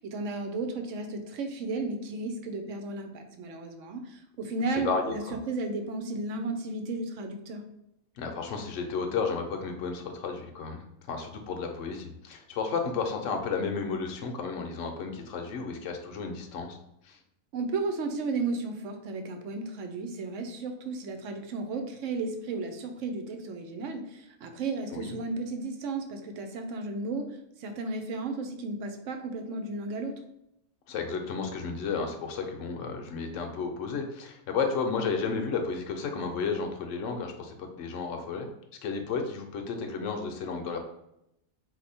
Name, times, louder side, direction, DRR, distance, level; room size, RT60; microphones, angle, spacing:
voice 1, 0.0-7.6 17.5-27.3 27.6-30.1, right 3 dB, 70° right, 6 dB, 1.0 m, -34 dB
voice 2, 4.7-5.4 8.2-16.8 17.0-17.2 24.9-25.1 30.9-38.5 38.8-40.8, left 5 dB, 70° left, 4 dB, 1.0 m, -32 dB
4.3 x 2.7 x 4.3 m, 0.82 s
omnidirectional pair, 1.4 m